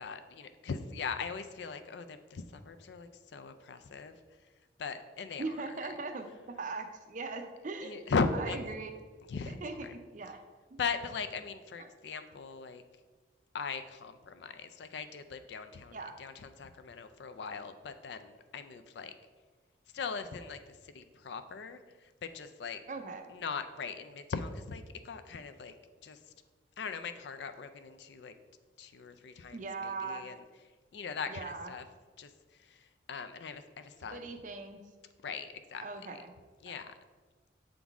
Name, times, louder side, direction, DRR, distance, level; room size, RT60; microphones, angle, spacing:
voice 1, 0.0-4.1 4.8-5.9 7.8-8.6 9.3-9.6 9.8-9.9 10.8-12.8 13.5-19.1 19.9-22.8 23.3-25.7 26.0-26.2 26.8-28.3 28.8-30.4 30.9-31.8 32.2-32.3 32.7-34.3 35.2-35.9 36.6-36.9, left 5 dB, 70° left, 10 dB, 0.4 m, -39 dB
voice 2, 5.4-6.2 6.6-8.1 8.4-8.9 9.5-10.4 10.7-10.8 11.8-11.9 15.9-16.2 22.9-23.3 29.5-30.2 31.3-31.7 34.1-34.8 35.8-36.3 36.7-36.8, right 3 dB, 45° right, 6 dB, 0.5 m, -40 dB
7.2 x 3.8 x 3.5 m, 1.4 s
head